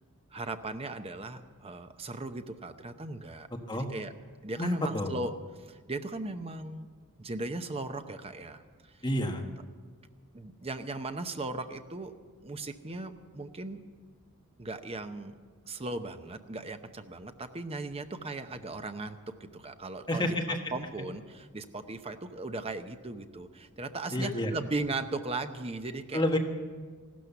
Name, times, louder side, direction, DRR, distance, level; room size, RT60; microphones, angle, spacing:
voice 1, 0.3-3.5 3.7-4.1 4.4-5.3 5.6-6.9 7.2-9.0 10.3-12.1 12.4-13.8 14.6-15.4 15.7-26.4, right 2 dB, 25° right, 8 dB, 0.8 m, -37 dB
voice 2, 4.6-5.1 9.0-9.4 20.1-20.6 24.1-24.5 26.1-26.4, left 1 dB, 20° left, 2 dB, 1.4 m, -29 dB
15.0 x 12.5 x 7.0 m, 1.5 s
head